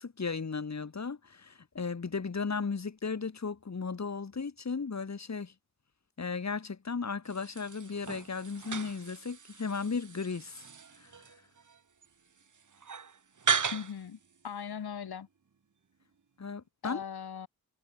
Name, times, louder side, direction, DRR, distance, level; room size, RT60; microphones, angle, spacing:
voice 1, 0.0-5.5 6.2-10.6 11.0-11.1 16.4-17.0, left 5 dB, 45° left, 4.1 m, -35 dB
sound 1, 7.2-14.8, right 6 dB, 50° right, 2.6 m, -37 dB
voice 2, 13.7-14.2 14.4-15.3 16.8-17.5, left 7 dB, 80° left, 5.1 m, -39 dB
cardioid pair, 75°, 38 cm